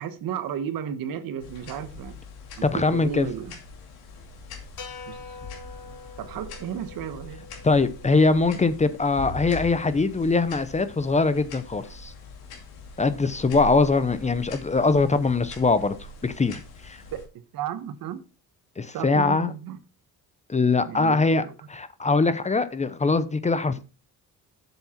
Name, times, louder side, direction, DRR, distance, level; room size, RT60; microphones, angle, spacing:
voice 1, 0.0-2.2 2.6-3.6 5.1-5.5 5.9-7.5 17.1-18.2 18.9-19.8 20.8-21.5, right 9 dB, 70° right, 1.2 m, -34 dB
sound 1, 1.4-17.3, left 2 dB, 90° left, 2.7 m, -42 dB
voice 2, 2.6-3.3 7.6-12.1 13.0-15.9 16.2-17.0 18.8-19.5 20.5-23.8, left 3 dB, 20° left, 0.7 m, -22 dB
sound 2, 4.8-9.1, left 4 dB, 60° left, 2.7 m, -45 dB
7.6 x 7.2 x 4.3 m
cardioid pair, 115°, 36 cm